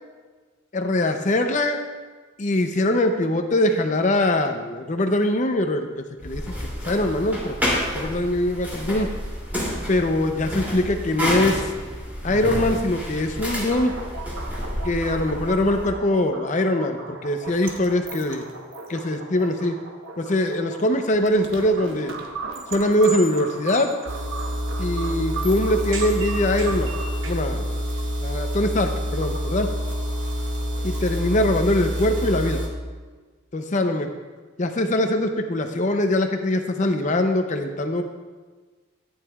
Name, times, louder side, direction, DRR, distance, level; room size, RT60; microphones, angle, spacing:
voice 1, 0.7-1.8 2.4-7.6 7.9-9.1 9.9-11.6 12.2-13.9 14.8-18.4 18.9-19.8 20.2-22.1 22.7-24.0 24.8-27.0 27.2-27.7 28.2-29.7 30.8-32.6 33.5-34.1 34.6-38.0, left 1 dB, 35° left, 6 dB, 0.6 m, -22 dB
sound 1, 6.2-15.9, equal, 10° right, 2.6 m, -29 dB
sound 2, 13.7-27.3, right 3 dB, 80° right, 1.0 m, -36 dB
sound 3, 24.1-32.7, equal, 60° right, 1.8 m, -27 dB
14.0 x 9.7 x 2.4 m, 1.4 s
head